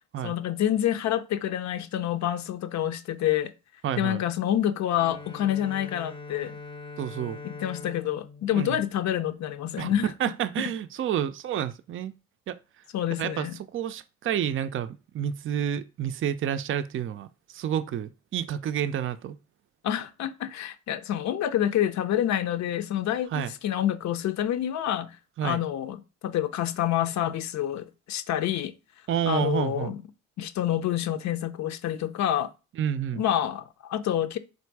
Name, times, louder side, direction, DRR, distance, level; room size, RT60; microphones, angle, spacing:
voice 1, 0.2-3.5 4.0-6.6 7.4-10.1 12.9-13.6 19.8-25.2 25.4-26.0 26.2-28.7 29.3-30.0 30.4-32.5 33.1-34.4, left 11 dB, 65° left, 0.6 m, -27 dB
voice 2, 3.8-4.2 7.0-7.4 8.5-8.8 9.8-12.1 12.5-12.6 13.2-19.3 23.3-23.5 25.4-25.6 29.1-30.0 32.7-33.2, right 9 dB, 45° right, 0.4 m, -29 dB
Bowed string instrument, 4.9-9.8, left 3 dB, 15° left, 0.6 m, -43 dB
3.4 x 2.7 x 4.6 m
cardioid pair, 90°, 30 cm